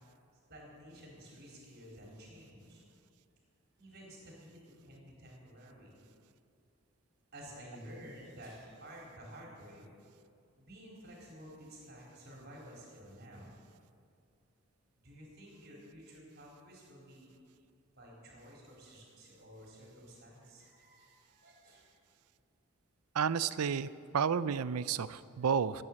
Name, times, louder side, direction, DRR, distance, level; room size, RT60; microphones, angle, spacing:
voice 1, 0.5-2.8 3.8-6.0 7.3-9.9 10.5-13.5 15.0-17.3 18.0-21.9, equal, 45° right, -3 dB, 4.2 m, -52 dB
voice 2, 23.2-23.9 24.1-25.8, right 7 dB, 85° right, 16 dB, 0.5 m, -31 dB
15.5 x 9.3 x 7.5 m, 2.4 s
head